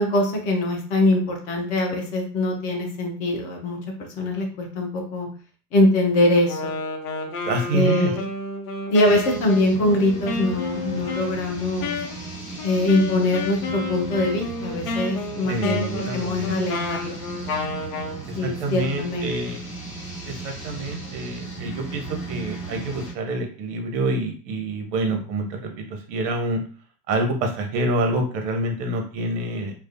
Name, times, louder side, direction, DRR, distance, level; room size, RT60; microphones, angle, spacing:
voice 1, 0.0-5.3 5.7-6.7 7.7-8.2 8.9-12.0 12.6-15.9 16.1-17.2 18.4-19.5, left 1 dB, 20° left, 2 dB, 0.3 m, -23 dB
Wind instrument woodwind instrument, 6.4-18.2, left 3 dB, 60° left, 0.8 m, -31 dB
voice 2, 7.4-8.1 15.4-16.5 18.3-19.6 20.3-26.6 27.1-29.7, right 2 dB, 50° right, 4 dB, 0.8 m, -27 dB
sound 1, 9.0-23.1, right 3 dB, 90° left, 1.0 m, -36 dB
2.3 x 2.1 x 2.5 m, 0.40 s
figure-of-eight pair, 85°, 47 cm